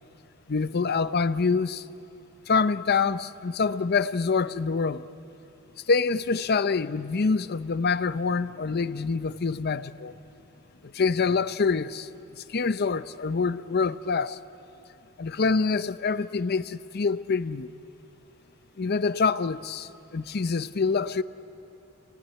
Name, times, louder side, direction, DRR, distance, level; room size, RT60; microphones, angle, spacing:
voice 1, 0.5-1.8 2.5-5.1 5.9-10.1 10.8-12.1 12.4-14.4 15.2-17.7 18.8-21.2, left 4 dB, 50° left, 0.6 m, -26 dB
27.5 x 18.5 x 10.0 m
head